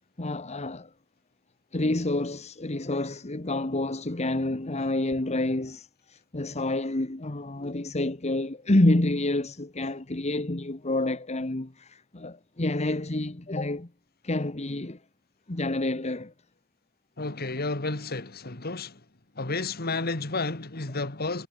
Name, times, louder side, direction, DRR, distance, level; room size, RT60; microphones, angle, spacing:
voice 1, 0.2-0.9 1.7-13.9 14.2-15.0 15.5-16.3, left 2 dB, 30° left, 1.2 m, -28 dB
voice 2, 17.2-19.0 19.4-21.5, left 3 dB, 45° left, 2.1 m, -31 dB
head